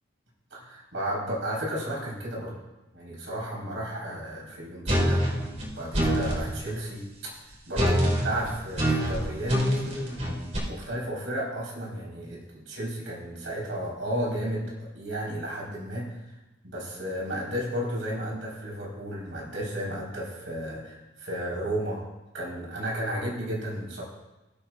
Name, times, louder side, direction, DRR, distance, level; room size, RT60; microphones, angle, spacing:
voice 1, 0.5-2.5 2.9-5.2 5.8-7.0 7.7-10.0 10.4-16.2 16.6-22.0 22.3-24.0, right 1 dB, 85° right, -4 dB, 4.1 m, -33 dB
sound 1, 4.9-6.4 7.7-10.6, equal, 40° right, 3.9 m, -25 dB
19.5 x 8.8 x 2.4 m, 1.0 s
head